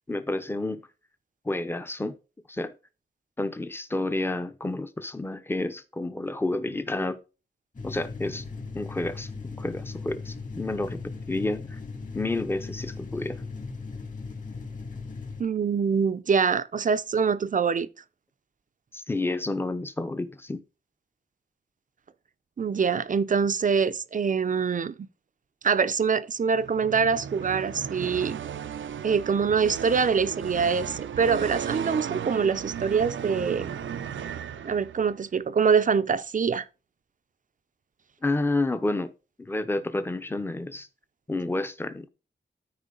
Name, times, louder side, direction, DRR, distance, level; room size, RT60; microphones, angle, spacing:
voice 1, 0.1-0.8 1.4-2.2 2.5-2.7 3.4-7.2 7.8-8.4 8.7-11.8 12.1-13.4 18.9-20.6 38.2-39.1 39.4-40.9 41.3-42.1, left 2 dB, 10° left, 0.7 m, -30 dB
sound 1, 7.7-15.4, left 4 dB, 40° left, 2.5 m, -38 dB
voice 2, 15.4-17.9 22.6-25.1 25.6-28.4 29.0-33.7 34.6-36.7, right 6 dB, 45° right, 0.5 m, -24 dB
sound 2, 26.5-35.2, right 8 dB, 85° right, 0.6 m, -35 dB
13.0 x 4.9 x 3.8 m
wide cardioid pair, 155°, 19 cm